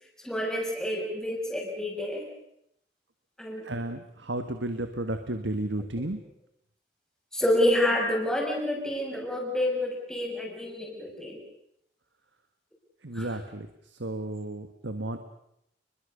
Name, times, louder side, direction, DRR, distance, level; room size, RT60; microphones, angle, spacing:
voice 1, 0.2-2.3 3.4-3.7 7.3-11.4 13.1-13.3, left 1 dB, 5° left, 0 dB, 6.2 m, -28 dB
voice 2, 3.6-6.2 13.0-13.7 13.9-15.2, right 1 dB, 90° right, 8 dB, 1.8 m, -33 dB
29.5 x 22.0 x 6.7 m, 0.78 s
head